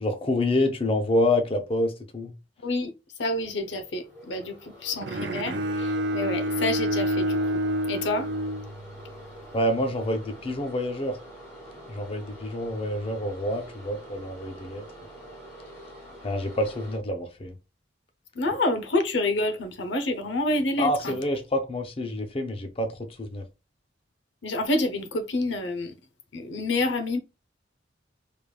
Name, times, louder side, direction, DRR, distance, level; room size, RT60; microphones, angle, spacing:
voice 1, 0.0-2.3 9.5-11.2 11.9-14.8 16.2-17.5 20.8-23.4, left 1 dB, 30° left, 0.6 m, -27 dB
voice 2, 3.2-7.4 7.9-8.3 18.4-21.2 24.4-25.9 26.3-27.2, left 2 dB, 75° left, 0.7 m, -28 dB
sound 1, 3.4-17.0, equal, 15° left, 2.3 m, -46 dB
Bowed string instrument, 5.0-9.2, equal, 65° right, 0.6 m, -28 dB
5.0 x 3.3 x 2.3 m
head